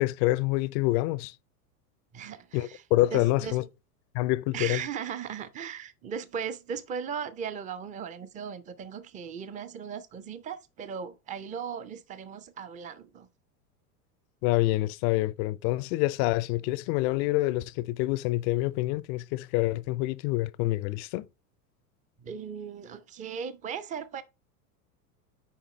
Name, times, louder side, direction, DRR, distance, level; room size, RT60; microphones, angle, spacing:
voice 1, 0.0-1.3 2.5-3.6 4.1-4.8 14.4-21.3, left 18 dB, 45° left, 0.5 m, -27 dB
voice 2, 2.1-2.8 3.1-3.6 4.5-13.3 22.2-24.2, right 7 dB, 15° right, 0.5 m, -37 dB
7.2 x 4.9 x 3.1 m
hypercardioid pair, 90°, 46 cm